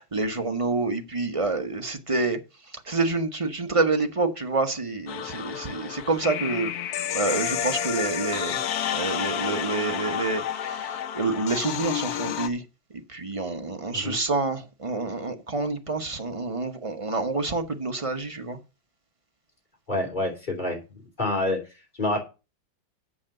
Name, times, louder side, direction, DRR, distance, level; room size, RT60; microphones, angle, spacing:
voice 1, 0.0-2.4 2.9-6.7 7.1-8.6 8.9-12.6 12.9-18.6, right 3 dB, 25° right, 0.7 m, -28 dB
sound 1, 5.1-12.5, left 9 dB, 65° left, 1.1 m, -30 dB
voice 2, 19.9-20.8 21.2-21.6 22.0-22.2, left 2 dB, 25° left, 3.3 m, -27 dB
7.6 x 6.2 x 6.5 m
omnidirectional pair, 2.0 m